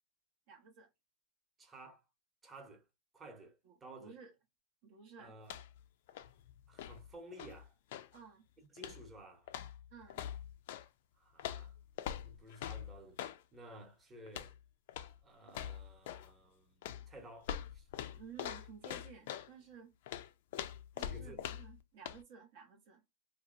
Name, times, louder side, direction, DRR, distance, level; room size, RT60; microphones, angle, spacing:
voice 1, 0.5-0.9 3.6-4.3 4.8-5.3 8.1-8.5 9.9-10.2 18.1-19.9 20.9-23.0, right 6 dB, 55° right, 0.7 m, -54 dB
voice 2, 1.6-2.0 2.4-2.8 3.1-4.1 5.2-5.6 6.7-7.7 8.7-9.5 11.2-11.7 12.2-14.5 15.0-16.8 17.1-17.9 21.0-21.4, right 2 dB, 20° right, 0.9 m, -54 dB
sound 1, 5.4-5.8 6.1-8.2 8.8-9.1 9.5-10.9 11.4-13.4 14.3-14.6 14.9-15.2 15.5-16.3 16.8-19.5 20.1-21.8 22.0-22.2, left 10 dB, 65° left, 0.3 m, -44 dB
2.7 x 2.1 x 2.5 m
hypercardioid pair, 115°, 0 cm